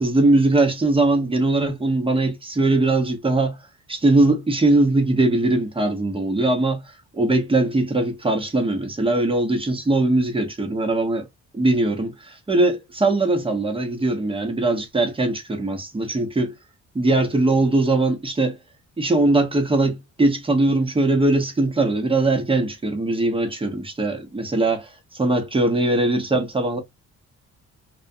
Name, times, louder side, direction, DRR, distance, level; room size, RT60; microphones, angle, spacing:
voice 1, 0.0-3.6 3.9-11.3 11.5-16.6 16.9-18.6 19.0-26.8, right 2 dB, 20° right, 0.9 m, -21 dB
2.3 x 2.3 x 2.6 m
cardioid pair, 75°, 30 cm